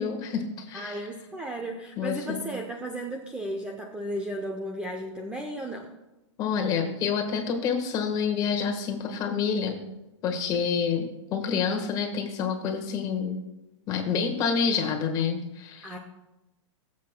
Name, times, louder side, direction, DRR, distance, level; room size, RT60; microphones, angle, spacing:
voice 1, 0.0-1.0 2.0-2.5 6.4-9.8 10.2-13.4 13.9-16.0, left 6 dB, 25° left, 3 dB, 1.4 m, -28 dB
voice 2, 0.7-5.9 15.8-16.0, right 1 dB, 5° right, 2 dB, 0.6 m, -34 dB
20.5 x 7.5 x 2.2 m, 0.99 s
hypercardioid pair, 155°, 16 cm